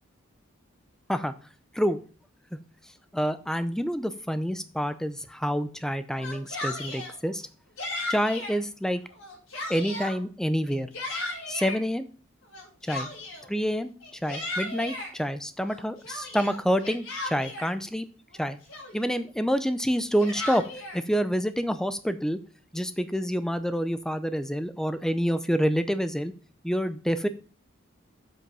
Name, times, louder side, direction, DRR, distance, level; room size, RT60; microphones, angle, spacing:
voice 1, 3.1-7.4 8.1-9.0 9.7-10.9 11.5-12.1 12.9-13.1 13.5-13.9 14.2-18.1 18.4-18.6 18.9-20.6 20.9-22.4 22.7-26.3 26.6-27.3, equal, 5° left, 11 dB, 0.5 m, -27 dB
Yell, 6.1-7.1 7.8-8.6 9.1-10.2 10.7-11.8 12.5-13.5 14.0-15.1 15.6-17.7 18.3-18.4 18.7-19.2 19.9-21.0, left 2 dB, 90° left, 4.5 m, -35 dB
7.6 x 5.6 x 5.4 m, 0.39 s
head